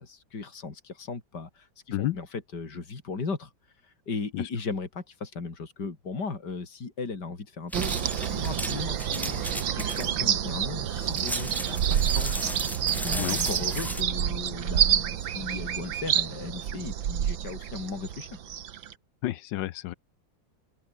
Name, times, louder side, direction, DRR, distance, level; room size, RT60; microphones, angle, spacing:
voice 1, 0.0-3.5 3.8-9.4 9.7-12.5 13.0-18.4, left 4 dB, 60° left, 4.1 m, -37 dB
sound 1, 7.7-14.0, equal, ahead, 1.1 m, -36 dB
sound 2, 7.7-18.9, right 9 dB, 80° right, 2.0 m, -28 dB
voice 2, 19.2-19.9, left 15 dB, 75° left, 1.3 m, -30 dB
omnidirectional pair, 2.1 m